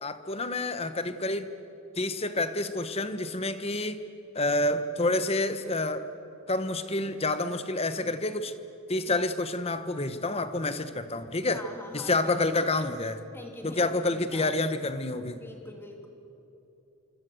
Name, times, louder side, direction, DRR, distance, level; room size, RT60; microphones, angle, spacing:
voice 1, 0.0-1.5 2.0-4.0 4.3-6.1 6.5-8.5 8.9-11.6 11.9-13.2 13.6-15.4, left 2 dB, 25° left, 11 dB, 1.1 m, -28 dB
voice 2, 11.5-12.1 13.3-14.5 15.3-16.1, left 1 dB, 10° left, 2 dB, 2.9 m, -44 dB
26.5 x 25.5 x 7.9 m, 2.8 s
head